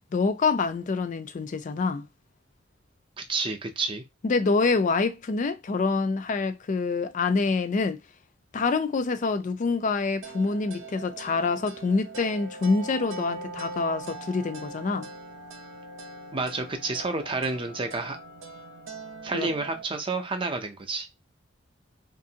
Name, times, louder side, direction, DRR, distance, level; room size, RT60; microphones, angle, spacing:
voice 1, 0.1-2.1 4.2-8.0 8.5-15.1 19.3-19.5, left 4 dB, 40° left, 0.4 m, -26 dB
voice 2, 3.2-4.0 16.3-18.2 19.2-21.1, right 3 dB, 25° right, 0.5 m, -30 dB
sound 1, 10.2-19.8, right 2 dB, 85° right, 0.6 m, -41 dB
2.8 x 2.5 x 2.7 m
head